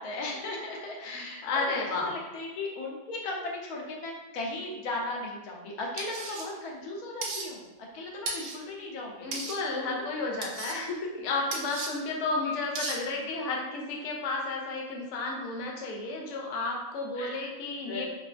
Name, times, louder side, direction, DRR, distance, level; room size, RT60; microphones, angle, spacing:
voice 1, 0.0-9.3 11.3-11.5 12.4-12.5 13.2-13.3 17.1-17.6 17.8-18.0, left 2 dB, 90° left, -1 dB, 1.2 m, -37 dB
voice 2, 1.0-2.1 9.2-18.0, left 3 dB, 65° left, 0 dB, 0.9 m, -32 dB
sound 1, 6.0-6.5 7.2-7.5 8.3-8.6 9.3-9.6 10.4-10.8 11.5-11.9 12.8-13.0, right 3 dB, 75° right, 1.0 m, -35 dB
4.5 x 2.5 x 2.4 m, 1.1 s
omnidirectional pair, 1.5 m